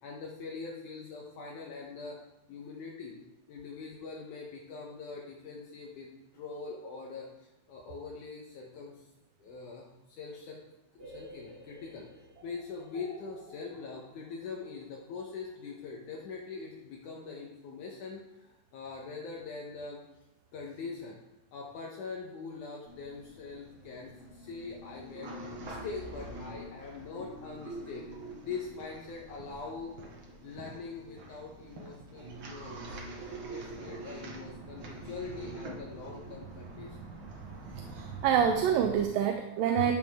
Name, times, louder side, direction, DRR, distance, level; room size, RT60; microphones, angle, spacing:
voice 1, 0.0-2.2 2.5-3.2 3.5-9.0 9.4-10.6 10.9-12.1 12.4-20.0 20.5-21.2 21.5-29.9 30.4-32.8 33.1-37.0, left 4 dB, 70° left, -1 dB, 2.3 m, -43 dB
sound 1, 11.0-16.8, equal, 5° right, 2.4 m, -53 dB
sound 2, 22.9-39.0, right 2 dB, 55° right, 1.4 m, -45 dB
voice 2, 37.9-39.9, right 8 dB, 80° right, 6 dB, 2.3 m, -26 dB
13.0 x 7.7 x 3.5 m, 0.94 s
omnidirectional pair, 4.0 m